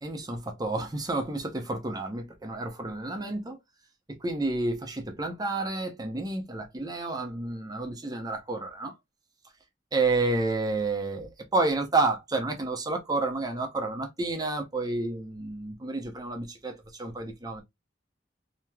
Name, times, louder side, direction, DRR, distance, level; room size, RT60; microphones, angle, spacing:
voice 1, 0.0-3.6 4.1-9.0 9.9-17.6, right 2 dB, 20° right, 0.7 m, -30 dB
3.1 x 2.9 x 2.2 m
head